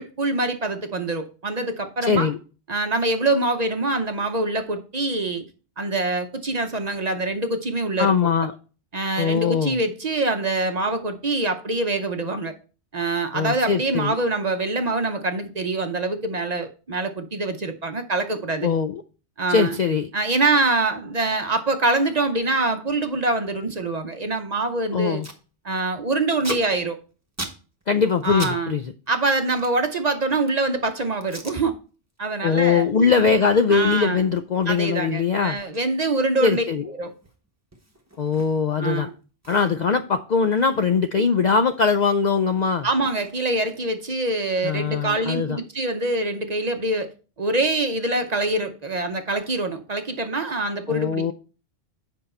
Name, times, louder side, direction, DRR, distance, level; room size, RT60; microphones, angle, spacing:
voice 1, 0.0-2.3 2.7-5.4 5.8-8.3 8.9-12.5 12.9-18.7 19.4-19.7 20.1-25.2 25.6-27.0 28.2-28.7 29.1-31.8 32.2-32.9 33.7-34.2 34.7-36.6 37.0-37.1 38.8-39.1 42.8-47.1 47.4-51.3, right 2 dB, 40° right, 0.7 m, -24 dB
voice 2, 2.0-2.4 8.0-8.5 9.2-9.8 13.3-14.2 18.6-19.0 19.5-20.1 24.9-25.3 27.9-28.9 32.4-35.6 36.4-36.9 38.2-39.1 39.5-42.9 44.6-45.6 50.9-51.3, left 5 dB, 60° left, 0.5 m, -21 dB
Packing tape duct tape, 24.7-24.8 25.0-25.4 25.7-28.6 28.8-30.7 31.2-31.6 32.0-32.3 32.6-38.8 39.1-39.2 39.4-41.8 42.1-44.0, right 2 dB, 15° right, 1.0 m, -41 dB
7.9 x 5.4 x 4.3 m
omnidirectional pair, 1.2 m